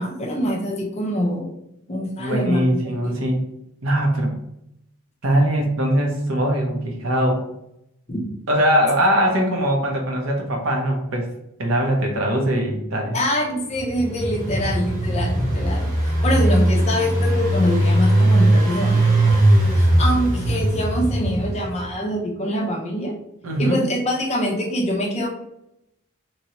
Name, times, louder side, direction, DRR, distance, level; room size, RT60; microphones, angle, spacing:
voice 1, 0.0-1.5 1.9-3.1 8.1-8.2 13.1-19.2 19.8-23.1 23.6-25.3, equal, 30° left, 0 dB, 0.6 m, -24 dB
voice 2, 2.2-3.4 3.8-4.3 5.2-7.4 8.5-11.3 11.6-13.1 23.4-23.8, equal, 60° right, 1 dB, 0.8 m, -21 dB
Engine, 13.7-21.8, right 1 dB, 35° right, 1.1 m, -19 dB
3.0 x 2.8 x 2.9 m, 0.81 s
head